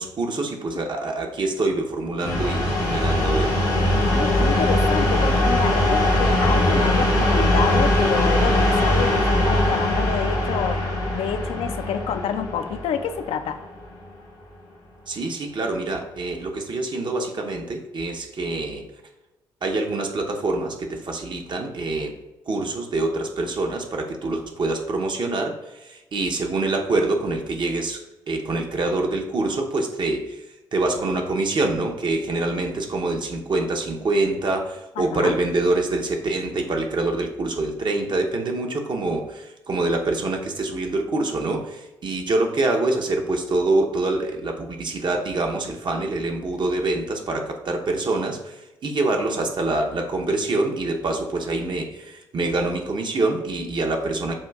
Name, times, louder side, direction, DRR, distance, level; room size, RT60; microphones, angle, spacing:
voice 1, 0.0-3.6 15.1-18.8 19.6-22.2 22.5-30.5 30.7-54.3, right 2 dB, 45° right, 3 dB, 0.8 m, -25 dB
sound 1, 2.2-13.8, left 1 dB, 90° left, 1.4 m, -21 dB
voice 2, 4.1-10.8 11.1-13.6 35.0-35.4, left 7 dB, 60° left, 9 dB, 0.4 m, -28 dB
7.2 x 2.5 x 2.3 m, 1.0 s
hypercardioid pair, 45°, 11 cm